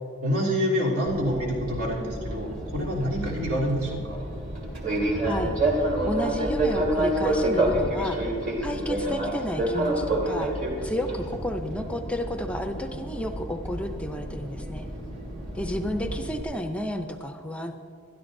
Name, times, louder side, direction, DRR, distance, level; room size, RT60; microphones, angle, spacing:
voice 1, 0.2-4.2, equal, 90° right, -4 dB, 3.3 m, -27 dB
Fixed-wing aircraft airplane, 1.1-16.4, right 1 dB, 35° right, 2.2 m, -29 dB
voice 2, 5.1-10.5 10.8-14.9 15.5-17.7, left 1 dB, 5° left, 6 dB, 0.5 m, -32 dB
21.5 x 12.5 x 2.7 m, 2.5 s
head